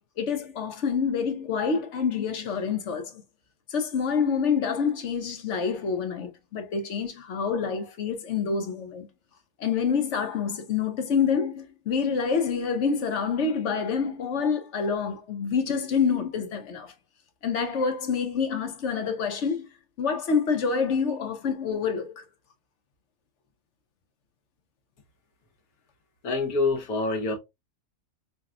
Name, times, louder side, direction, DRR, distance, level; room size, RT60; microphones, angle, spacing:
voice 1, 0.2-3.2 3.7-9.1 9.6-16.9 17.4-19.7 20.0-22.2, left 6 dB, 60° left, 1.1 m, -27 dB
voice 2, 26.2-27.3, left 3 dB, 80° left, 1.5 m, -26 dB
5.9 x 2.3 x 2.4 m
omnidirectional pair, 1.5 m